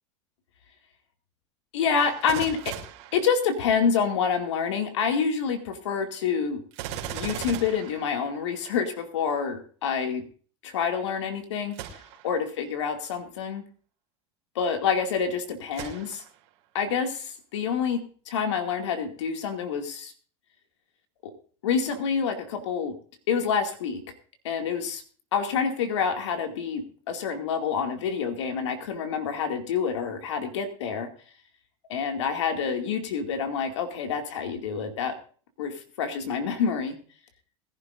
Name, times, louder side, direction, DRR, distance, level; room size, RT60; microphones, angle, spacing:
voice 1, 1.7-2.8 3.1-6.6 7.1-10.2 10.6-11.8 12.2-13.6 14.6-16.2 16.7-20.1 21.2-21.3 21.6-23.0 23.3-24.0 24.4-25.0 25.3-31.1 31.9-35.2 35.6-36.9, left 6 dB, 85° left, 5 dB, 2.3 m, -27 dB
Gunshot gunfire, 2.0-4.0 6.7-8.8 11.7-12.4 13.0-13.1 15.7-16.5 17.0-17.1, right 9 dB, 65° right, 2.9 m, -38 dB
21.5 x 11.0 x 2.6 m, 0.42 s
supercardioid pair, 105°, 15 cm